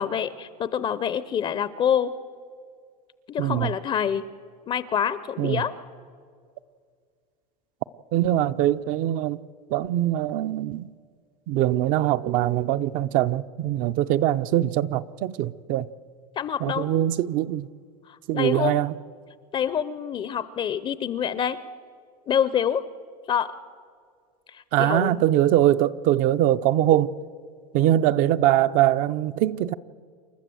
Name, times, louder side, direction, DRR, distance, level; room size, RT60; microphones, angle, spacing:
voice 1, 0.0-2.1 3.3-4.2 4.7-5.7 16.4-16.9 18.3-18.8 19.5-21.6 22.3-22.8 23.3-23.5 24.5-25.2, left 8 dB, 25° left, 0.5 m, -26 dB
voice 2, 3.4-3.7 5.4-5.6 8.1-9.4 9.7-10.9 11.5-15.9 16.6-17.7 18.3-18.9 24.7-27.1 27.7-29.7, right 13 dB, 45° right, 0.6 m, -22 dB
28.5 x 12.5 x 7.7 m
supercardioid pair, 140°, 20 cm